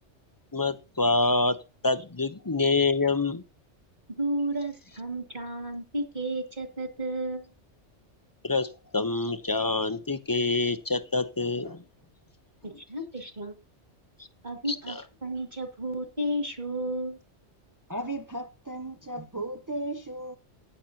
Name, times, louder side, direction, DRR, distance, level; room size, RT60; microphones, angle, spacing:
voice 1, 0.5-1.6 1.8-3.4 8.4-11.8 14.7-15.0, left 3 dB, 25° left, 0.6 m, -26 dB
voice 2, 4.2-7.5 12.8-13.5 14.4-15.0 15.2-17.2, right 1 dB, 40° right, 2.4 m, -32 dB
voice 3, 17.9-20.4, right 1 dB, 20° right, 0.6 m, -35 dB
15.0 x 10.0 x 2.8 m
omnidirectional pair, 1.2 m